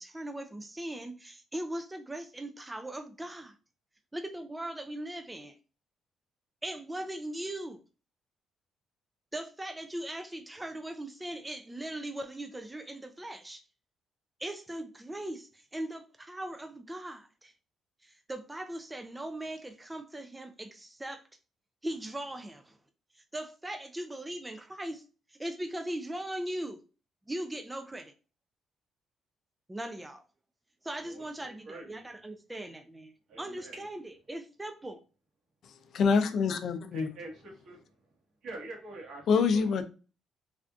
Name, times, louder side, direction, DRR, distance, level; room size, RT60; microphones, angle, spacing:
voice 1, 0.0-3.5 4.1-5.6 6.6-7.8 9.3-13.6 14.4-17.5 18.0-21.2 21.8-22.8 23.1-26.8 27.3-28.1 29.7-30.2 30.8-35.0, right 1 dB, 15° right, 0.4 m, -39 dB
voice 2, 31.0-31.9 33.3-33.8 36.9-37.9 38.4-39.7, right 2 dB, 70° right, 1.3 m, -45 dB
voice 3, 35.9-37.1 39.3-39.8, left 5 dB, 65° left, 0.4 m, -25 dB
3.4 x 2.5 x 2.4 m
cardioid pair, 90°, 0 cm